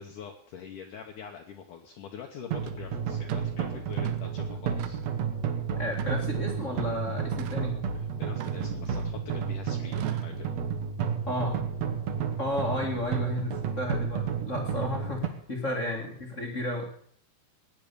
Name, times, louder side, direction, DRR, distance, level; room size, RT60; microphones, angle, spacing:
voice 1, 0.0-5.0 8.2-10.6, left 7 dB, 65° left, 2 dB, 2.2 m, -44 dB
sound 1, 2.5-15.3, right 7 dB, 55° right, 2.0 m, -31 dB
sound 2, 2.7-2.8 3.3-3.5 3.9-4.3 4.8-5.2 5.9-6.6 7.4-7.7 8.4-9.3 9.9-10.4, right 13 dB, 80° right, 3.0 m, -42 dB
voice 2, 5.8-7.8 11.2-11.6 12.4-16.9, left 1 dB, 35° left, 0 dB, 1.2 m, -32 dB
18.0 x 9.5 x 6.9 m, 0.63 s
omnidirectional pair, 4.7 m